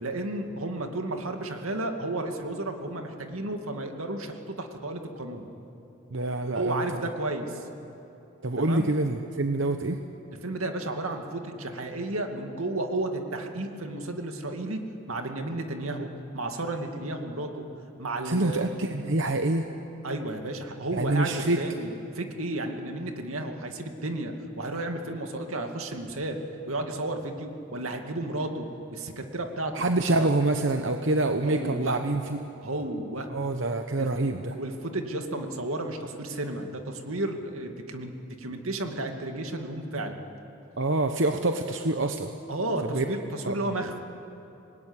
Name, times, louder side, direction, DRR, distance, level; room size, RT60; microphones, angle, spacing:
voice 1, 0.0-5.5 6.5-7.7 8.6-8.9 10.4-16.1 16.3-17.6 18.0-18.7 20.0-26.4 26.7-29.8 30.1-30.3 31.4-32.0 32.6-33.3 34.0-34.1 34.5-40.2 42.5-44.0, right 2 dB, 85° right, 4 dB, 2.3 m, -32 dB
voice 2, 6.1-7.1 8.4-10.0 18.2-19.7 20.9-21.6 29.7-32.4 33.3-34.5 40.8-42.3 42.9-43.0 43.4-43.5, right 2 dB, 60° right, 6 dB, 1.0 m, -26 dB
25.5 x 20.0 x 9.8 m, 2.9 s
head